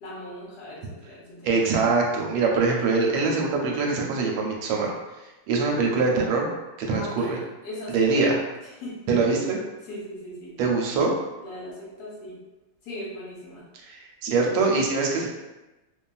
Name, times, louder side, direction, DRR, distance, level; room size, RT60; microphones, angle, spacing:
voice 1, 0.0-1.5 6.9-8.3 8.8-9.0 9.9-10.5 11.4-12.4 12.8-13.6, equal, 70° left, -5 dB, 1.1 m, -38 dB
voice 2, 1.4-4.9 5.2-6.5 6.8-7.4 7.9-8.4 9.1-9.6 10.6-11.1 13.8-15.3, right 4 dB, 85° right, 0 dB, 1.3 m, -23 dB
2.9 x 2.3 x 2.3 m, 1.1 s
omnidirectional pair, 2.0 m